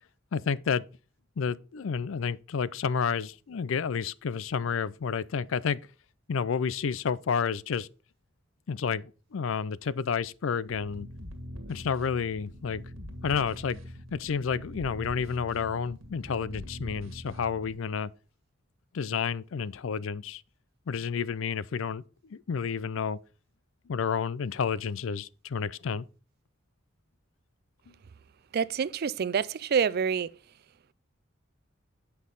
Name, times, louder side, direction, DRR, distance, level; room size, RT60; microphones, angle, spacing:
voice 1, 0.3-0.8 1.4-5.8 6.3-7.9 8.7-9.0 9.3-11.1 11.7-12.8 13.2-13.8 14.1-18.1 18.9-20.4 20.9-22.0 22.3-23.2 23.9-26.0, left 6 dB, 70° left, 0.4 m, -30 dB
sound 1, 10.7-17.7, equal, 85° right, 1.7 m, -43 dB
voice 2, 28.5-30.3, right 7 dB, 50° right, 0.4 m, -27 dB
8.3 x 5.5 x 3.9 m
head